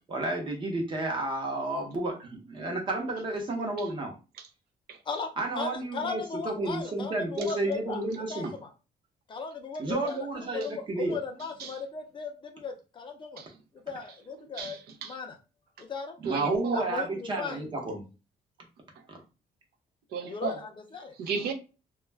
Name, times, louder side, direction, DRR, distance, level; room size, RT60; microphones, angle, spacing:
voice 1, 0.1-4.1 5.4-8.5 9.8-11.2 16.2-18.0 19.1-19.2, right 2 dB, 30° right, 0.8 m, -31 dB
voice 2, 5.5-8.0 8.3-8.7 9.3-13.4 13.9-14.8 15.0-15.4 15.8-16.2 16.7-17.6 20.2-21.1, left 5 dB, 30° left, 0.4 m, -37 dB
voice 3, 14.4-15.2 16.2-16.8 19.0-19.1 20.1-20.6 21.1-21.5, right 5 dB, 85° right, 0.5 m, -35 dB
2.3 x 2.1 x 3.2 m
cardioid pair, 175°, 16 cm